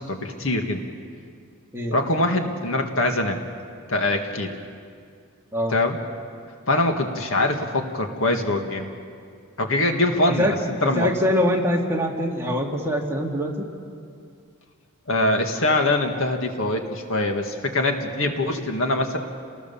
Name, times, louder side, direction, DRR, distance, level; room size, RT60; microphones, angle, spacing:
voice 1, 0.1-0.8 1.9-3.4 3.9-4.5 5.7-6.0 6.7-8.8 9.6-10.6 10.8-11.1 15.1-19.2, left 2 dB, 60° left, 4 dB, 2.0 m, -23 dB
voice 2, 10.8-13.7, equal, 10° right, -1 dB, 2.2 m, -23 dB
30.0 x 19.5 x 7.2 m, 2.3 s
head